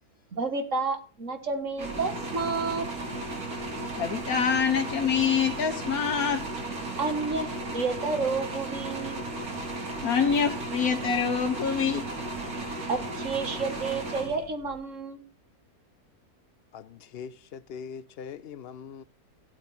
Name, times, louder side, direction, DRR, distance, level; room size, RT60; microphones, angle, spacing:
voice 1, 0.3-2.9 7.0-7.5 7.7-9.2 12.9-15.2, right 4 dB, 55° right, 2.1 m, -30 dB
sound 1, 1.8-14.8, right 2 dB, 80° right, 3.2 m, -35 dB
voice 2, 4.0-6.4 10.0-12.1, left 6 dB, 80° left, 1.7 m, -25 dB
voice 3, 16.7-19.0, left 7 dB, 50° left, 0.8 m, -41 dB
15.0 x 8.9 x 4.3 m
omnidirectional pair, 1.6 m